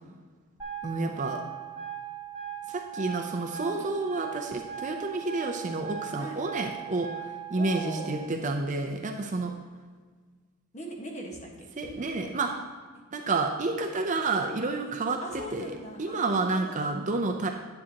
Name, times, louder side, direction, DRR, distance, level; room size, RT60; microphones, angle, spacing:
sound 1, 0.6-8.2, right 10 dB, 15° right, 2.8 m, -39 dB
voice 1, 0.8-1.4 2.7-7.2 7.5-9.6 11.8-12.5 13.1-15.2 15.5-17.5, right 3 dB, 35° right, 3 dB, 0.5 m, -30 dB
voice 2, 7.6-8.2 10.7-12.4 14.8-16.9, right 1 dB, 30° left, 0 dB, 1.4 m, -41 dB
10.0 x 8.4 x 2.9 m, 1.5 s
head